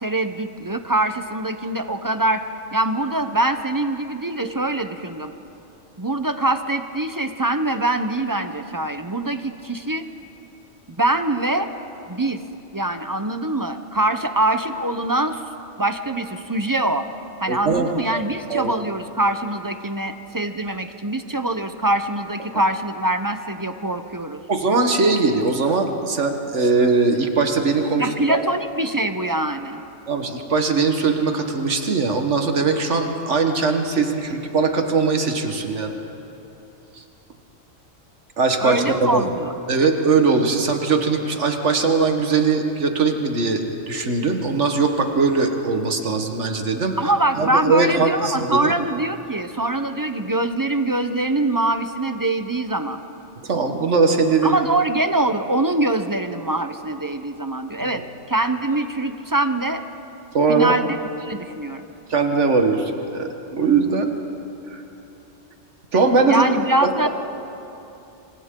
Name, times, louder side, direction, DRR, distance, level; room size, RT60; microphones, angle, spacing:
voice 1, 0.0-2.4 2.7-5.3 6.0-10.1 10.9-11.7 12.1-12.4 12.7-15.4 15.8-17.1 17.4-24.4 28.0-29.8 38.6-39.5 47.0-53.0 54.4-59.8 60.5-61.0 61.2-61.8 66.3-67.1, right 2 dB, 20° right, 8 dB, 0.5 m, -23 dB
voice 2, 17.5-18.2 18.5-18.7 24.5-28.4 30.1-36.0 36.9-37.0 38.4-39.3 39.7-47.1 47.4-48.7 53.4-54.6 57.9-58.0 60.3-60.8 62.1-64.1 64.7-64.8 65.9-66.4 66.8-67.1, right 4 dB, 65° right, 4 dB, 1.6 m, -20 dB
27.5 x 25.0 x 3.7 m, 2.9 s
omnidirectional pair, 1.3 m